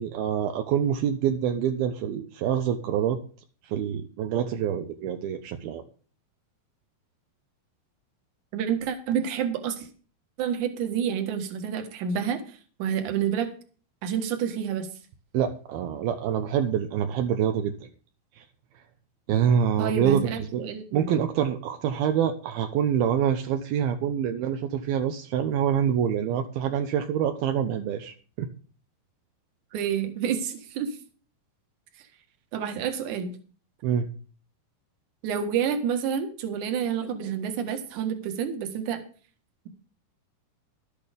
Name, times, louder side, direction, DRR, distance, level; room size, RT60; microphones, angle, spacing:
voice 1, 0.0-3.2 3.6-5.8 15.3-17.7 18.4-18.5 19.3-20.6 20.9-28.5 33.8-34.1, right 9 dB, 80° right, 6 dB, 2.7 m, -26 dB
voice 2, 8.5-9.9 10.4-13.5 14.0-14.9 19.8-21.3 29.7-31.0 32.5-33.4 35.2-39.0, right 8 dB, 60° right, 6 dB, 2.8 m, -29 dB
12.5 x 8.7 x 5.2 m, 0.40 s
omnidirectional pair, 4.5 m